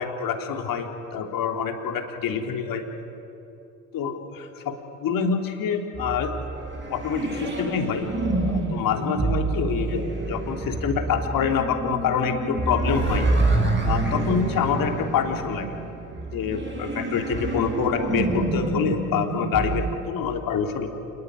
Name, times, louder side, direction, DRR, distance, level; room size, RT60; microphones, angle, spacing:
voice 1, 0.0-2.8 3.9-6.3 6.9-8.1 8.5-15.8 16.3-20.9, left 6 dB, 55° left, 4 dB, 3.5 m, -26 dB
sound 1, 5.9-19.9, right 2 dB, 30° right, 6.7 m, -27 dB
28.0 x 20.0 x 9.6 m, 2.8 s
hypercardioid pair, 65°, 40 cm